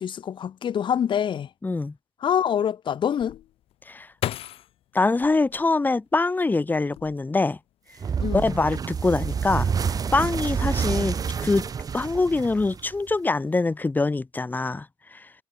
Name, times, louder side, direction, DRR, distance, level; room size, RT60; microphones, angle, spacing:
voice 1, 0.0-1.5 2.2-3.4 8.2-8.6, left 8 dB, 55° left, 0.8 m, -25 dB
voice 2, 1.6-1.9 3.9-4.1 4.9-7.6 8.3-9.7 10.1-11.7 11.9-14.9 15.1-15.3, left 3 dB, 20° left, 0.5 m, -24 dB
sound 1, 3.2-6.3 6.8-7.6 7.9-8.3, left 13 dB, 80° left, 3.8 m, -36 dB
sound 2, 8.0-13.1, right 6 dB, 40° right, 0.5 m, -28 dB
supercardioid pair, 60°, 10 cm